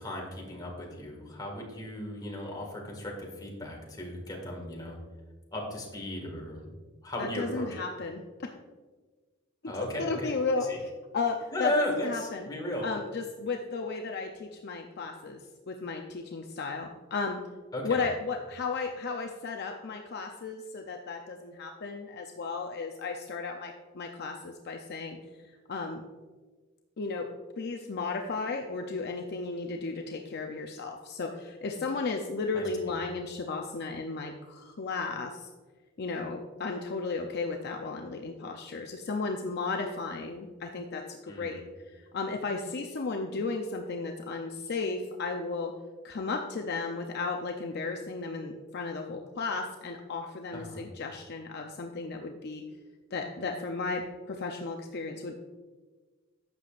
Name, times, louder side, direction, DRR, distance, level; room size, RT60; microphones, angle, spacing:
voice 1, 0.0-5.0 5.5-6.8 7.0-7.8 9.7-10.3 10.7-10.8 11.5-12.9 17.7-18.0 32.5-33.0 41.3-41.6 50.5-50.8, left 1 dB, 20° left, -1 dB, 1.9 m, -35 dB
voice 2, 7.2-8.2 10.0-12.5 12.8-15.4 15.7-17.4 17.8-25.2 25.7-26.0 27.0-27.3 27.6-35.5 36.0-45.7 46.0-52.6 53.1-55.3, left 4 dB, 55° left, 3 dB, 0.6 m, -34 dB
11.5 x 7.6 x 2.5 m, 1.3 s
head